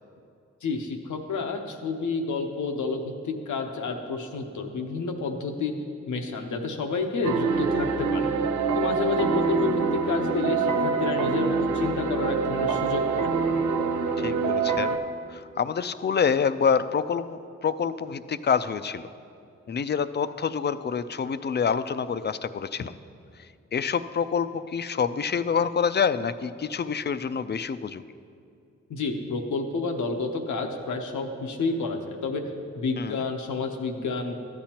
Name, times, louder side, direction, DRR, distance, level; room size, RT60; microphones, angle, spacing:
voice 1, 0.6-5.7 6.1-8.3 8.7-13.3 28.9-32.4 32.8-34.4, left 3 dB, 85° left, 3 dB, 0.8 m, -29 dB
sound 1, 7.2-15.0, right 4 dB, 90° right, 0.6 m, -25 dB
voice 2, 14.2-15.0 15.3-19.1 19.7-22.9 23.7-28.0 33.0-33.3, left 6 dB, 35° left, 13 dB, 0.4 m, -27 dB
13.5 x 8.7 x 2.9 m, 2.5 s
cardioid pair, 45°, 29 cm